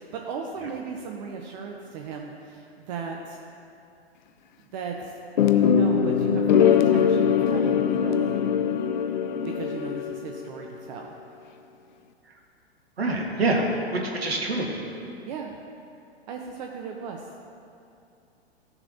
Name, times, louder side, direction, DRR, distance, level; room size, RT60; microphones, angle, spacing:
voice 1, 0.0-3.4 4.7-8.4 9.3-11.1 15.3-15.6 16.3-17.3, right 5 dB, 45° right, 1 dB, 0.8 m, -36 dB
sound 1, 5.4-10.5, left 7 dB, 45° left, 0.5 m, -22 dB
voice 2, 13.0-14.7, right 2 dB, 70° right, 0 dB, 1.7 m, -25 dB
16.0 x 6.9 x 2.8 m, 2.6 s
figure-of-eight pair, 105°, 32 cm